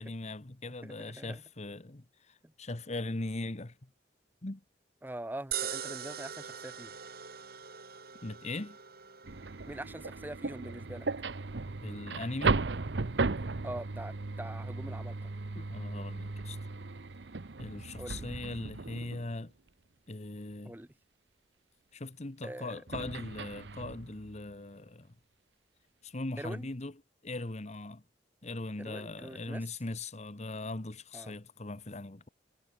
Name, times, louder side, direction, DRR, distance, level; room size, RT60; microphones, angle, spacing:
voice 1, 0.0-3.9 4.4-4.6 8.2-8.8 11.8-12.6 15.5-16.6 17.6-19.5 20.1-20.7 21.9-25.1 26.0-26.9 27.2-28.0 28.4-32.3, left 2 dB, 40° left, 1.2 m, -40 dB
voice 2, 0.8-1.4 2.4-2.5 5.0-7.0 9.7-11.1 13.6-15.3 18.0-18.2 20.6-20.9 22.4-22.8 26.4-26.7 28.8-29.6 31.1-31.4, right 1 dB, 10° right, 0.8 m, -43 dB
sound 1, 5.5-17.8, right 8 dB, 60° right, 4.6 m, -45 dB
sound 2, 9.2-19.4 22.9-24.5, right 3 dB, 90° right, 0.9 m, -36 dB
head